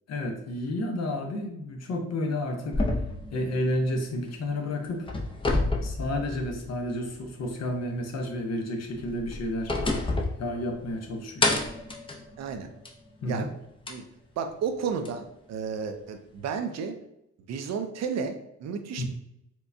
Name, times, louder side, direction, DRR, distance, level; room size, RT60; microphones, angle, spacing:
voice 1, 0.1-2.8 3.3-5.1 5.8-9.7 10.4-11.5 13.2-13.5 19.0-19.1, left 1 dB, 60° left, 3 dB, 0.7 m, -31 dB
sound 1, 2.7-4.5 4.8-6.9 7.2-7.3 8.9-11.0 11.4-13.1 13.9-14.0 15.0-15.1, left 2 dB, 15° left, 0.5 m, -29 dB
voice 2, 12.4-12.7 13.3-13.5 13.9-14.0 14.4-17.0 17.5-19.1, right 6 dB, 60° right, 6 dB, 0.6 m, -32 dB
4.4 x 2.2 x 2.6 m, 0.81 s
cardioid pair, 90°, 30 cm